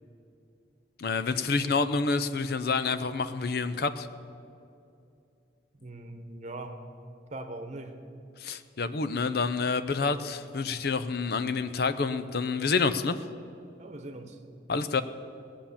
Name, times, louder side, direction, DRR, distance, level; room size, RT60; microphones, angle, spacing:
voice 1, 1.0-4.1 8.4-13.2 14.7-15.0, left 4 dB, 55° left, 12 dB, 0.6 m, -28 dB
voice 2, 5.7-6.8 7.3-8.0 13.8-14.4, right 2 dB, 40° right, 6 dB, 1.1 m, -41 dB
19.0 x 7.3 x 7.3 m, 2.6 s
head